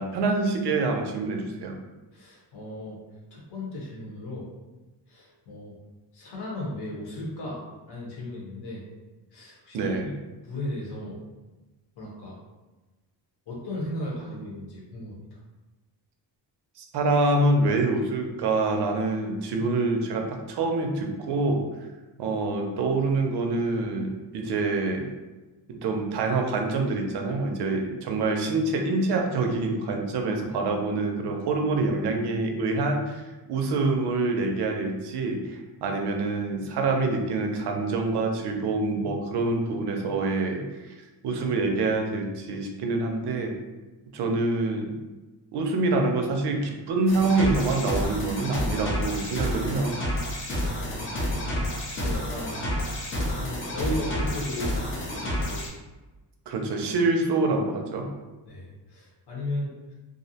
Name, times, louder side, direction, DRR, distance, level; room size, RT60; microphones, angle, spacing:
voice 1, 0.0-1.8 9.7-10.1 16.8-21.7 22.2-25.1 25.7-40.9 41.2-43.5 44.1-45.0 45.5-50.0 56.5-58.1, right 3 dB, 65° right, 3 dB, 0.5 m, -26 dB
voice 2, 2.1-3.0 3.3-4.5 5.1-5.8 6.1-7.6 7.9-8.8 9.3-10.2 10.5-11.2 12.0-12.4 13.5-15.2 50.6-51.2 52.0-52.6 53.0-55.7 58.5-59.9, left 1 dB, 60° left, -4 dB, 0.9 m, -36 dB
sound 1, 47.1-55.7, equal, 30° left, 0.4 m, -29 dB
2.5 x 2.0 x 2.7 m, 1.2 s
wide cardioid pair, 180°, 44 cm